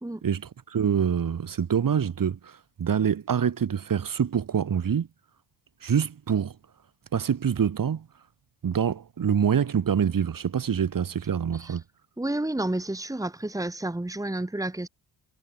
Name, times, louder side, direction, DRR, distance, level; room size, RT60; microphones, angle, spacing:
voice 1, 0.2-5.1 5.8-6.5 7.1-8.1 8.6-11.8, right 7 dB, 45° right, 6.0 m, -25 dB
voice 2, 12.2-14.9, right 1 dB, 5° right, 3.6 m, -30 dB
cardioid pair, 120°, 46 cm